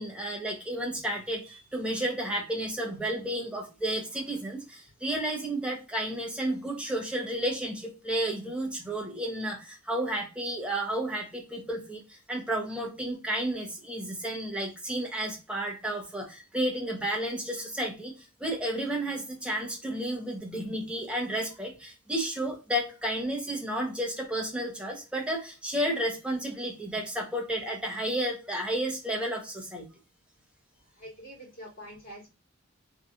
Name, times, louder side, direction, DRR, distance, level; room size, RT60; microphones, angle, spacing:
voice 1, 0.0-18.1 18.4-29.9, right 1 dB, 5° right, -1 dB, 0.7 m, -32 dB
voice 2, 31.0-32.3, equal, 45° left, -6 dB, 1.8 m, -45 dB
3.1 x 2.7 x 2.4 m, 0.30 s
head